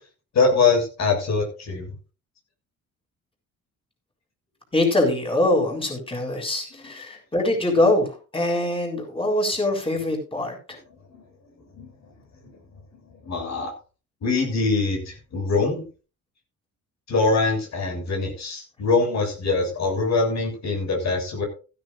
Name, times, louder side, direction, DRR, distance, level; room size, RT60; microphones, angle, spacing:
voice 1, 0.3-1.9 11.1-11.2 11.8-11.9 13.2-13.7 14.2-15.8 17.1-21.4, left 4 dB, 60° left, 2 dB, 7.1 m, -23 dB
voice 2, 4.7-8.1 8.3-10.6, left 1 dB, 20° left, 2 dB, 7.0 m, -23 dB
15.5 x 14.5 x 2.7 m, 0.34 s
cardioid pair, 90°, 30 cm